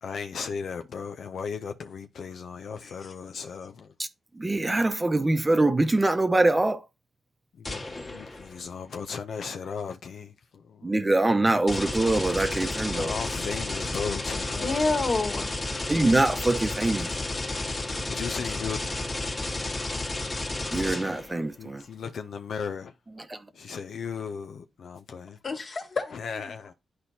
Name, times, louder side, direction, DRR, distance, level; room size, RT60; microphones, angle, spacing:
voice 1, 0.0-3.9 7.6-11.0 12.9-15.0 18.1-18.8 21.6-22.9 23.5-25.4 26.1-26.7, left 6 dB, 75° left, 0.6 m, -36 dB
voice 2, 4.4-6.8 10.8-13.1 15.9-17.1 20.7-21.8 23.3-23.4, right 2 dB, 25° right, 0.8 m, -24 dB
sound 1, 7.6-8.6 11.7-21.4, left 2 dB, 35° left, 1.7 m, -32 dB
voice 3, 14.6-15.5 25.4-26.5, left 3 dB, 50° left, 1.8 m, -29 dB
11.0 x 4.3 x 2.8 m
cardioid pair, 80°, 0 cm